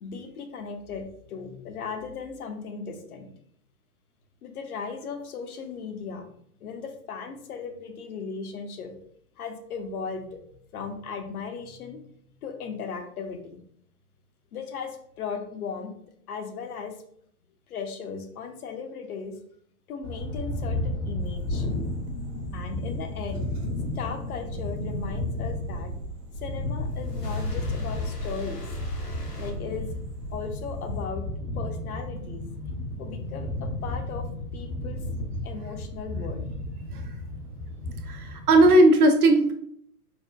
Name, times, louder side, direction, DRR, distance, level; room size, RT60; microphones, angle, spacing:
voice 1, 0.0-3.3 4.4-6.3 6.6-8.9 9.4-10.3 10.7-12.0 12.4-13.6 14.5-16.0 16.3-17.0 17.7-19.4 19.9-21.7 22.5-23.5 23.9-25.9 26.4-28.7 29.1-29.9 30.3-31.3 31.5-32.5 33.0-34.2 34.5-35.0 35.4-36.5, left 5 dB, 70° left, 6 dB, 0.7 m, -37 dB
sound 1, 20.0-38.7, left 1 dB, 5° left, 0.4 m, -33 dB
sound 2, 21.2-31.0, right 2 dB, 55° right, 1.0 m, -41 dB
sound 3, 26.7-30.3, left 2 dB, 90° left, 1.0 m, -36 dB
voice 2, 38.0-39.5, right 1 dB, 70° right, 5 dB, 0.7 m, -18 dB
4.3 x 2.1 x 2.3 m, 0.67 s
figure-of-eight pair, 110°, 46 cm